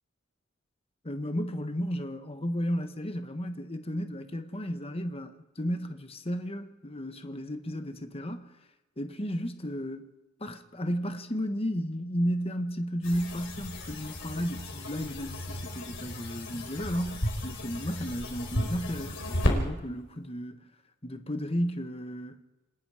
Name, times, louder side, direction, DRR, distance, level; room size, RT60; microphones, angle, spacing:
voice 1, 1.0-8.5 9.0-10.1 10.4-20.7 21.0-22.4, equal, 30° left, 1.4 m, -33 dB
sound 1, 13.0-19.6, left 1 dB, 65° left, 4.5 m, -34 dB
27.5 x 19.0 x 5.0 m
head